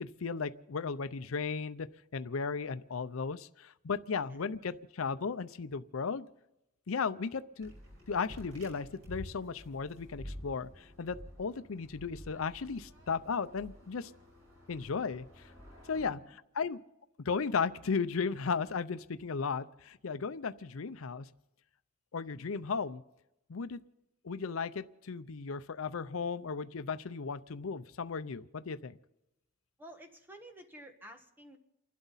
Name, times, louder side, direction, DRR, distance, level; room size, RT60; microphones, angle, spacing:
voice 1, 0.0-1.9 2.1-6.3 6.9-7.7 8.1-14.1 14.7-15.5 15.9-16.8 17.2-21.3 22.1-23.0 23.5-23.8 24.2-29.0, left 5 dB, 80° left, 13 dB, 0.6 m, -35 dB
sound 1, 7.6-16.1, equal, 90° right, 5.9 m, -50 dB
voice 2, 15.9-16.4 29.8-31.6, right 1 dB, 10° right, 5 dB, 1.3 m, -52 dB
30.0 x 12.0 x 4.1 m, 0.90 s
head